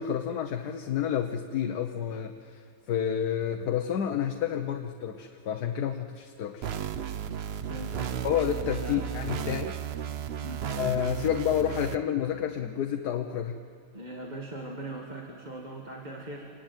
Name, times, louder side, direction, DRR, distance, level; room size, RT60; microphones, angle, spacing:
voice 1, 0.0-6.7 8.2-9.8 10.8-13.6, left 9 dB, 85° left, 5 dB, 1.5 m, -30 dB
sound 1, 6.6-12.0, right 9 dB, 50° right, 0.8 m, -34 dB
voice 2, 7.7-8.1 8.8-9.1 10.4-10.6 13.9-16.5, right 1 dB, 25° right, -1 dB, 2.0 m, -40 dB
26.5 x 19.0 x 9.0 m, 2.2 s
omnidirectional pair, 1.7 m